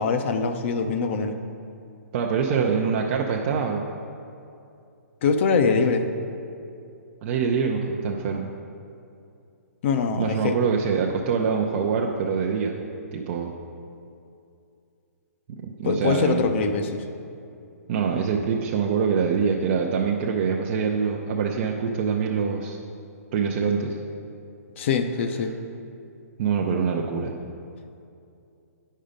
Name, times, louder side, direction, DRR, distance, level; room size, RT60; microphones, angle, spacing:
voice 1, 0.0-1.4 5.2-6.1 9.8-10.6 15.8-17.0 24.8-25.5, left 5 dB, 45° left, 7 dB, 0.6 m, -23 dB
voice 2, 2.1-3.9 5.6-5.7 7.2-8.5 10.2-12.8 13.1-13.5 15.5-16.6 17.9-22.8 23.3-24.0 26.4-27.3, right 6 dB, 40° right, 0 dB, 0.6 m, -25 dB
8.6 x 5.5 x 5.1 m, 2.6 s
hypercardioid pair, 140°, 9 cm